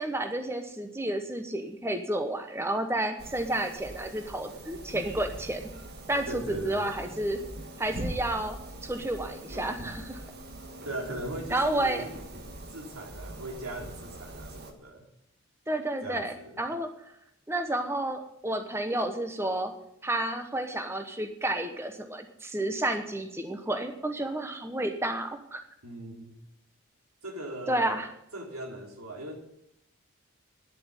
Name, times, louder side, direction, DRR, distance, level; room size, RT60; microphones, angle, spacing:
voice 1, 0.0-5.7 6.1-7.4 7.8-8.6 8.8-10.2 11.5-12.0 15.7-16.9 17.5-19.7 20.0-25.6 27.7-28.1, right 1 dB, 10° right, 6 dB, 0.9 m, -31 dB
sound 1, 3.2-14.7, right 1 dB, 50° right, 1.7 m, -42 dB
voice 2, 6.3-6.9 10.8-12.1 12.7-15.0 16.0-16.6 25.8-26.4 27.2-28.1 28.3-29.3, right 1 dB, 90° right, 0 dB, 3.5 m, -39 dB
10.5 x 7.6 x 9.6 m, 0.78 s
head